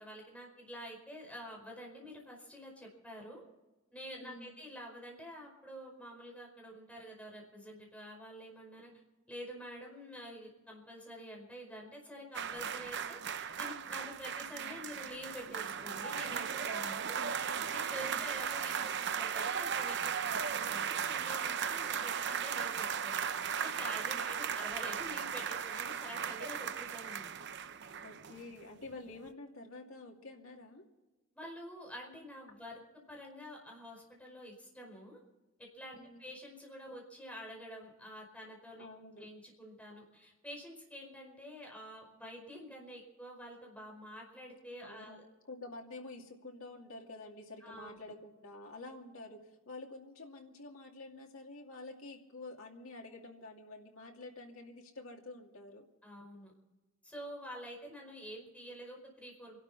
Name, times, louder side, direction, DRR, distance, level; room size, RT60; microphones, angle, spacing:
voice 1, 0.0-3.4 3.9-8.9 9.3-17.2 17.7-27.3 31.3-32.7 33.1-35.2 35.7-38.9 39.2-45.2 47.6-47.9 56.0-56.5 57.0-59.6, equal, 5° left, -1 dB, 5.0 m, -48 dB
voice 2, 4.2-4.5 18.0-18.3 24.1-24.2 28.0-30.8 35.9-36.2 38.8-39.3 44.8-45.2 45.5-49.4 49.7-55.9, left 2 dB, 85° left, 0 dB, 2.6 m, -49 dB
sound 1, 12.3-28.6 28.9-29.1, right 7 dB, 55° right, 0.8 m, -36 dB
28.0 x 12.0 x 4.2 m, 1.1 s
head